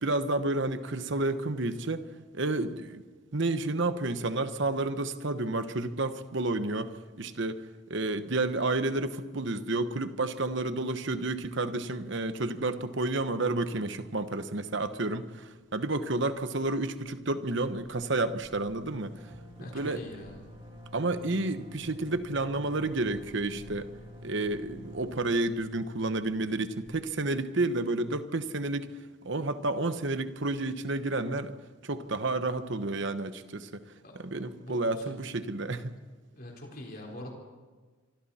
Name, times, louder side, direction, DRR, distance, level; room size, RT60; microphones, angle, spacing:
voice 1, 0.0-2.0 2.3-3.0 3.3-6.9 7.2-7.6 7.9-19.2 19.6-20.0 20.9-23.9 24.2-28.9 29.2-31.5 31.8-33.8 34.1-35.9, right 2 dB, 55° right, 10 dB, 1.1 m, -30 dB
sound 1, 18.6-27.6, equal, 25° right, 3.4 m, -49 dB
voice 2, 19.6-20.4 34.0-34.2 34.6-35.1 36.3-37.3, left 1 dB, 45° left, -1 dB, 4.3 m, -43 dB
25.5 x 24.5 x 4.3 m, 1.4 s
head